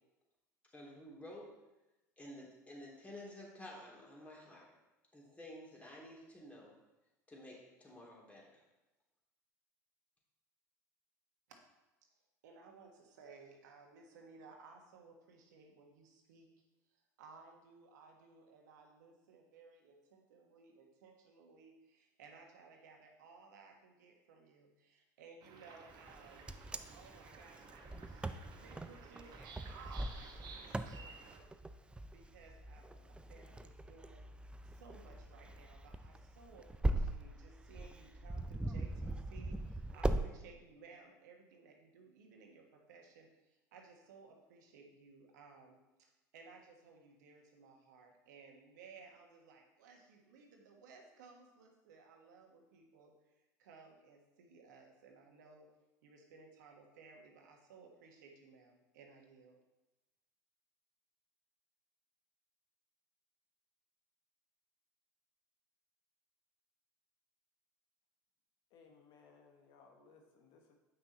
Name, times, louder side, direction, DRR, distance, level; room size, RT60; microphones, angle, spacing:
voice 1, 0.7-1.5 2.2-4.7 5.1-6.7 7.3-8.6, left 1 dB, 15° left, -3 dB, 3.0 m, -52 dB
voice 2, 12.4-16.5 16.9-26.5 26.9-31.5 32.1-34.3 34.6-55.7 56.0-59.6, right 4 dB, 75° right, 2 dB, 1.4 m, -59 dB
sound 1, 25.4-31.4, right 4 dB, 45° right, 1.2 m, -55 dB
Wind, 26.1-40.3, right 1 dB, 10° right, 0.5 m, -41 dB
voice 3, 68.7-70.8, left 5 dB, 55° left, 3 dB, 1.4 m, -63 dB
8.4 x 5.9 x 4.2 m, 1.0 s
hypercardioid pair, 75°, 10 cm